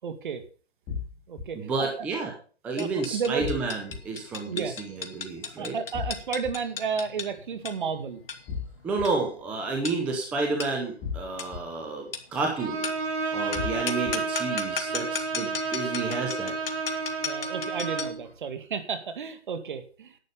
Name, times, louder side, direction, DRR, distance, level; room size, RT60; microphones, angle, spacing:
voice 1, 0.0-0.4 1.3-1.9 2.8-3.5 4.5-4.8 5.6-8.2 17.2-20.2, right 6 dB, 50° right, 10 dB, 2.0 m, -32 dB
sound 1, 0.9-1.4 3.4-4.0 5.9-6.5 8.5-9.1 11.0-11.6 13.5-14.1, left 6 dB, 20° left, 2.0 m, -34 dB
voice 2, 1.5-2.3 2.6-5.7 8.8-12.9 13.3-16.5, right 3 dB, 5° right, 1 dB, 0.7 m, -30 dB
sound 2, 2.8-18.2, left 5 dB, 60° left, 2.2 m, -38 dB
Bowed string instrument, 12.5-18.2, right 4 dB, 85° right, 5.3 m, -31 dB
11.0 x 8.2 x 5.4 m, 0.39 s
hypercardioid pair, 155°, 32 cm